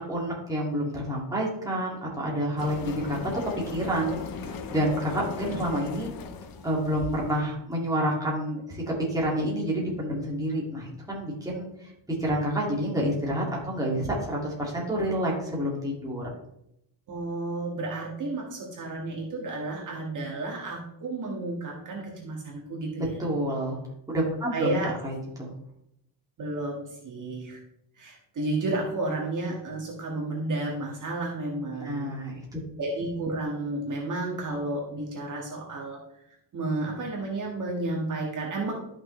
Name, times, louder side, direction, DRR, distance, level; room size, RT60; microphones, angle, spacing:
voice 1, 0.0-3.3 3.7-6.1 6.6-8.8 9.1-11.9 12.2-16.3 23.2-23.8 24.1-25.5 31.7-32.6, equal, 10° right, -4 dB, 2.3 m, -29 dB
sound 1, 2.6-7.4, left 5 dB, 50° left, 0.8 m, -37 dB
voice 2, 17.1-23.1 24.5-24.9 26.4-27.6 28.0-32.1 32.8-36.0 36.5-38.7, right 2 dB, 40° right, -1 dB, 1.9 m, -32 dB
12.5 x 6.1 x 3.2 m, 0.78 s
cardioid pair, 180°, 46 cm